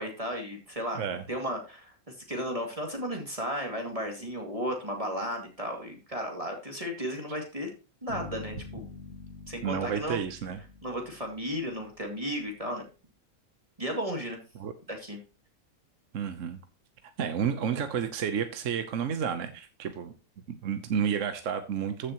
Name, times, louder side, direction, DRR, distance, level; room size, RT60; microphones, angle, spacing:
voice 1, 0.0-1.0 1.3-7.7 8.0-8.9 9.5-10.2 10.8-12.9 13.8-14.4 14.9-15.2, equal, 25° right, 1 dB, 2.5 m, -34 dB
sound 1, 8.1-12.1, left 3 dB, 70° left, 2.8 m, -45 dB
voice 2, 9.6-10.6 14.6-14.7 16.1-16.6 17.2-20.1 20.6-22.1, right 7 dB, 60° right, 9 dB, 1.2 m, -31 dB
15.0 x 6.7 x 3.0 m, 0.33 s
omnidirectional pair, 1.5 m